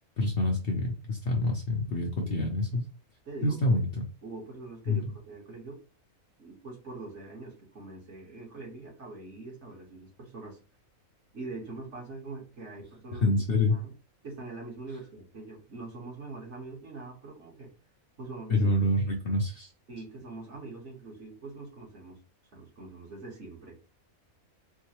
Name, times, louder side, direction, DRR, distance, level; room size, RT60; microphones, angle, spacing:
voice 1, 0.2-2.9 3.4-4.1 4.9-5.0 13.2-13.8 18.5-19.7, left 2 dB, 50° left, 0 dB, 0.8 m, -27 dB
voice 2, 4.2-5.8 6.4-10.6 11.3-13.4 13.7-13.9 14.2-17.7 18.2-18.7 19.9-22.2 22.5-23.8, right 3 dB, 55° right, -3 dB, 1.7 m, -43 dB
4.5 x 2.1 x 3.0 m, 0.34 s
omnidirectional pair, 1.5 m